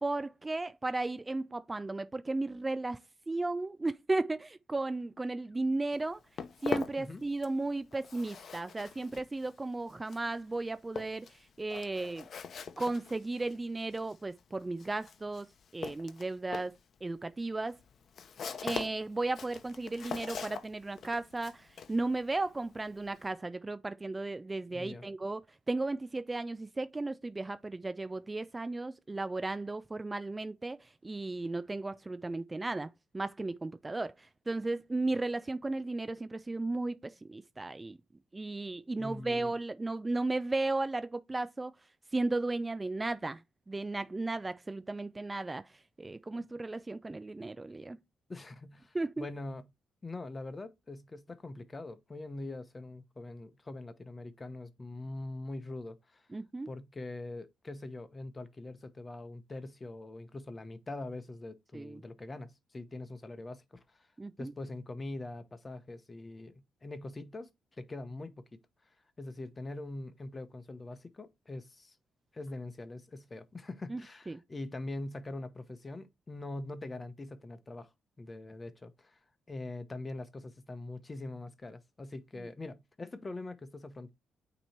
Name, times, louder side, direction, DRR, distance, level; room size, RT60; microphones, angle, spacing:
voice 1, 0.0-3.0 3.3-6.2 6.6-12.3 12.8-16.7 17.0-17.8 18.6-25.4 25.7-38.0 38.3-41.7 42.1-43.4 43.7-48.0 48.9-49.3 56.3-56.7 61.7-62.0 64.2-64.5 73.9-74.0 74.3-74.4 82.4-82.5, right 2 dB, 20° right, 0.4 m, -35 dB
Walk footsteps, 5.9-7.7 7.9-23.3, left 6 dB, 55° left, 0.8 m, -43 dB
voice 2, 24.7-25.1 39.0-39.5 48.3-49.6 50.0-56.2 56.7-64.1 64.4-67.5 67.8-68.4 69.2-71.9 72.3-77.9 78.2-79.2 79.5-84.1, left 2 dB, 25° left, 0.9 m, -43 dB
8.9 x 3.0 x 4.3 m
cardioid pair, 90°, 0 cm